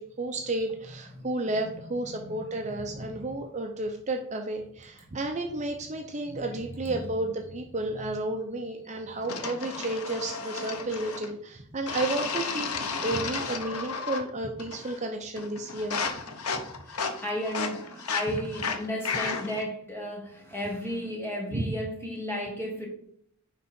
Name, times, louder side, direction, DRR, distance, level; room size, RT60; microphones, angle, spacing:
voice 1, 0.0-12.7 13.0-16.0 16.9-17.1 21.5-21.7, right 2 dB, 30° right, 3 dB, 0.6 m, -32 dB
voice 2, 2.6-3.1 6.2-6.5 6.8-7.0 16.8-22.9, equal, 10° left, -1 dB, 1.7 m, -34 dB
sound 1, 9.3-11.3 11.9-14.3 14.6-15.1 15.4-19.7, left 5 dB, 90° left, 1.0 m, -33 dB
9.8 x 3.7 x 4.3 m, 0.67 s
head